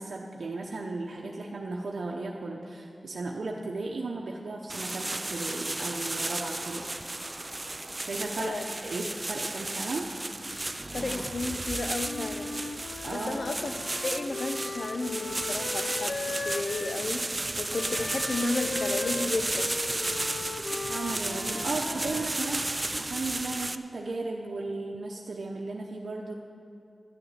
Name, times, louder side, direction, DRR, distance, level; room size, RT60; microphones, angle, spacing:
voice 1, 0.0-6.9 8.0-8.5 8.8-10.1 13.0-13.4 20.9-26.3, right 3 dB, 75° right, -1 dB, 0.9 m, -35 dB
sound 1, 4.7-23.8, right 2 dB, 25° right, 0.4 m, -33 dB
sound 2, 10.0-14.1, right 1 dB, 5° right, 2.4 m, -45 dB
voice 2, 10.9-12.5 13.1-13.7 14.0-16.1 16.4-19.7, left 2 dB, 60° left, 7 dB, 0.8 m, -33 dB
Wind instrument woodwind instrument, 12.0-17.0 17.7-22.7, left 4 dB, 90° left, 0.6 m, -38 dB
12.0 x 7.0 x 9.6 m, 2.5 s
wide cardioid pair, 110°, 0 cm